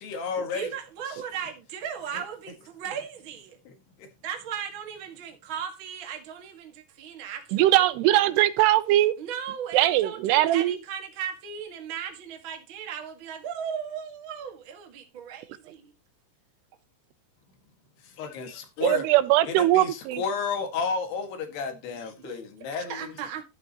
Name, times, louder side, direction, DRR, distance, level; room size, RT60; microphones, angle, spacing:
voice 1, 0.0-0.7 1.1-1.2 3.7-3.8 4.0-4.1 18.0-19.0 19.5-23.1, left 5 dB, 75° left, 4.0 m, -32 dB
voice 2, 0.5-3.6 4.2-7.8 9.2-15.9 22.2-22.5 22.9-23.4, right 8 dB, 40° right, 2.0 m, -37 dB
voice 3, 7.5-9.1 9.7-10.8 18.8-20.2, right 15 dB, 85° right, 2.7 m, -21 dB
13.0 x 8.4 x 3.0 m
omnidirectional pair, 4.8 m